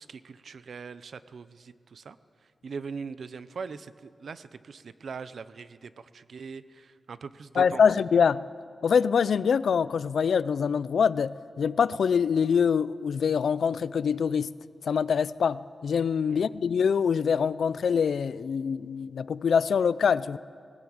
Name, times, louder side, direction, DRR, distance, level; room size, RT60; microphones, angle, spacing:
voice 1, 0.0-2.2 2.4-8.0 16.3-16.5, right 5 dB, 70° right, 14 dB, 0.7 m, -41 dB
voice 2, 7.6-8.4 8.8-14.5 14.9-20.4, left 6 dB, 90° left, 17 dB, 0.4 m, -24 dB
18.5 x 17.5 x 8.8 m, 2.2 s
wide cardioid pair, 145°, 0 cm